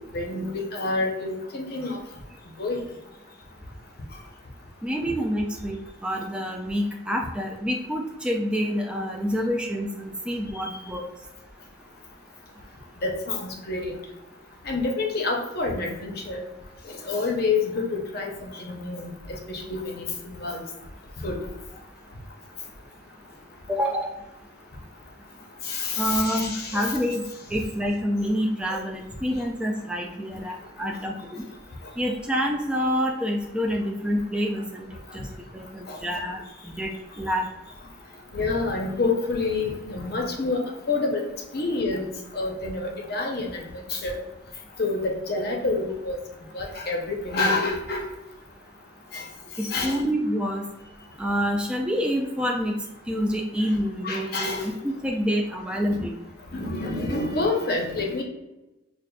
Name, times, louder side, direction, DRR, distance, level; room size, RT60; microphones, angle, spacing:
voice 1, 0.1-2.0 2.6-2.8 13.0-14.0 14.7-16.4 16.9-19.1 19.5-20.6 21.2-21.4 25.6-26.9 28.7-28.8 35.9-36.0 38.3-42.0 42.3-43.6 43.9-44.2 44.8-46.2 46.5-48.0 49.1-49.2 49.6-50.0 54.0-54.7 55.9-56.0 56.5-58.2, left 3 dB, 50° left, 1 dB, 0.6 m, -28 dB
voice 2, 4.8-11.1 23.7-24.1 26.0-31.4 32.0-34.9 35.1-35.3 35.5-37.5 49.6-50.7 51.2-52.8 53.1-56.1, equal, 5° right, 1 dB, 0.3 m, -27 dB
6.3 x 2.4 x 2.2 m, 1.0 s
head